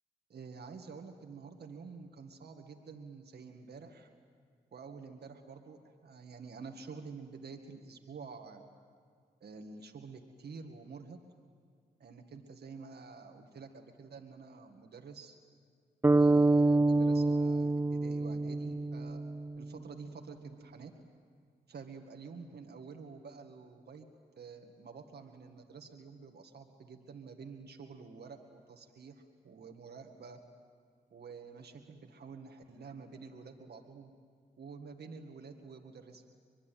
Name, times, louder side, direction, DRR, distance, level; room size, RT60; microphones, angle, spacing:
voice 1, 0.3-4.1 4.7-8.6 9.4-11.2 12.0-15.4 16.1-19.2 19.6-20.9 21.7-24.1 24.4-30.4 31.1-34.1 34.6-36.2, right 5 dB, 75° right, 4 dB, 2.0 m, -49 dB
sound 1, 16.0-20.0, right 2 dB, 15° right, 0.6 m, -27 dB
25.0 x 21.5 x 9.3 m, 2.1 s
cardioid pair, 45°, 17 cm